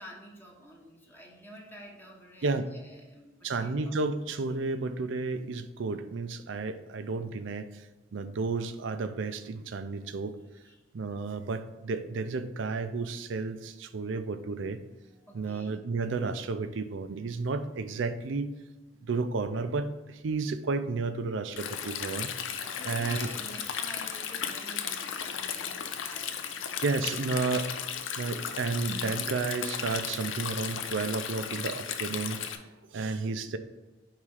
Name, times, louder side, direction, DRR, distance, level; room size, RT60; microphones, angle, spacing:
voice 1, 0.0-4.0 10.6-10.8 15.2-15.8 22.6-27.0, equal, 10° left, -2 dB, 0.8 m, -48 dB
voice 2, 3.4-7.9 8.1-10.4 10.9-14.8 15.3-18.5 19.0-22.3 22.8-23.3 26.8-27.7 28.2-33.6, right 4 dB, 75° right, 11 dB, 0.5 m, -32 dB
Stream, 21.6-32.6, left 8 dB, 75° left, 0.5 m, -35 dB
4.9 x 3.6 x 5.6 m, 1.1 s
head